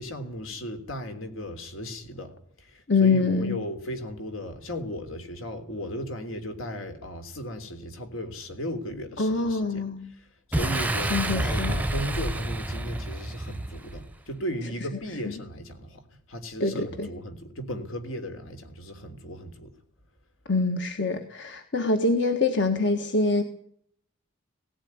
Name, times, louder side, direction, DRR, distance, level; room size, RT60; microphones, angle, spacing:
voice 1, 0.0-9.8 10.1-19.7, equal, 75° left, 3.3 m, -36 dB
voice 2, 2.9-3.6 9.2-10.0 11.1-11.8 16.6-17.1 20.5-23.4, left 3 dB, 55° left, 1.5 m, -24 dB
Boom, 10.5-14.1, right 1 dB, 5° right, 0.8 m, -29 dB
18.0 x 16.5 x 9.6 m
head